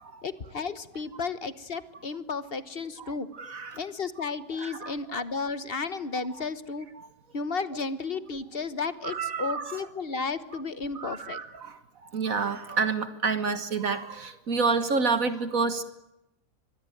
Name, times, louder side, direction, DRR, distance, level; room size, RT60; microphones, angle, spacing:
voice 1, 0.2-3.3 3.8-6.9 7.3-11.4, left 4 dB, 45° left, 13 dB, 1.3 m, -33 dB
voice 2, 3.0-3.8 4.2-5.3 6.3-6.5 6.9-7.1 9.0-10.1 10.5-10.6 10.9-15.8, right 4 dB, 65° right, 10 dB, 1.9 m, -30 dB
24.0 x 22.0 x 9.2 m, 0.86 s
omnidirectional pair, 1.5 m